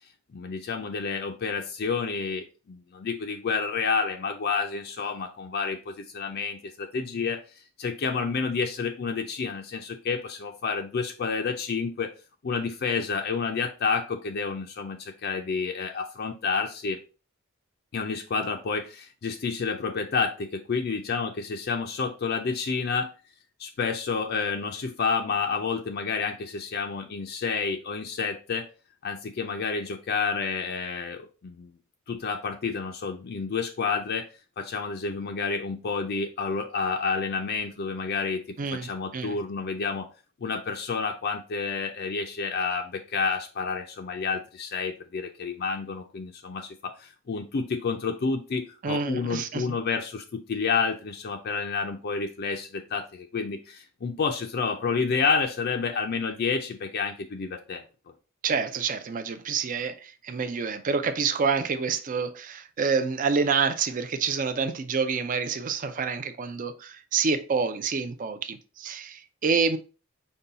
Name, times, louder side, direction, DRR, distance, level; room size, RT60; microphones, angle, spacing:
voice 1, 0.3-12.1 12.4-17.0 17.9-23.1 23.6-28.7 29.0-31.7 32.1-34.3 34.6-40.1 40.4-57.8, left 5 dB, 45° left, 0.4 m, -29 dB
voice 2, 38.6-39.4 48.8-49.7 58.4-69.8, right 5 dB, 40° right, 0.4 m, -28 dB
5.3 x 2.3 x 3.9 m
head